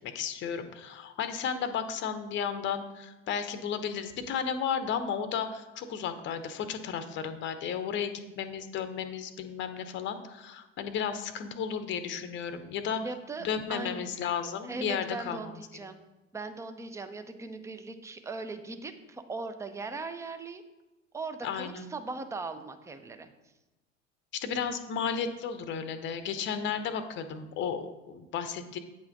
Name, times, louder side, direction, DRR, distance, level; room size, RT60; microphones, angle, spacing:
voice 1, 0.0-13.0 13.4-15.4 21.4-21.9 24.3-28.8, left 7 dB, 30° left, 10 dB, 0.7 m, -33 dB
voice 2, 13.0-14.0 14.6-16.0 16.3-20.6 21.1-23.3, right 3 dB, 10° right, 9 dB, 0.5 m, -39 dB
8.8 x 5.6 x 3.9 m, 1.1 s
figure-of-eight pair, 75°, 38 cm